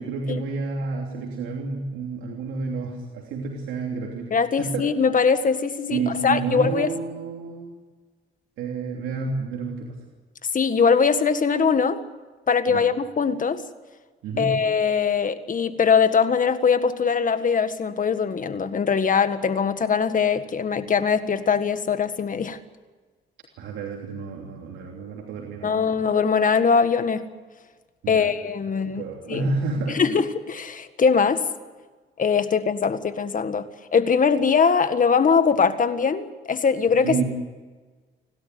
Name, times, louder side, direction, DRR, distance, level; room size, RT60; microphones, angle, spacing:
voice 1, 0.0-4.8 5.9-7.7 8.6-10.0 12.7-12.9 14.2-14.6 23.6-26.0 28.0-28.3 28.8-30.0 37.0-37.2, right 4 dB, 90° right, 0 dB, 3.1 m, -30 dB
voice 2, 4.3-6.9 10.5-12.0 12.5-13.6 14.4-22.6 25.6-27.3 28.1-29.5 29.9-31.5 32.2-33.7 33.9-37.2, left 6 dB, 40° left, 11 dB, 1.7 m, -21 dB
30.0 x 12.5 x 9.4 m, 1.4 s
cardioid pair, 90°, 20 cm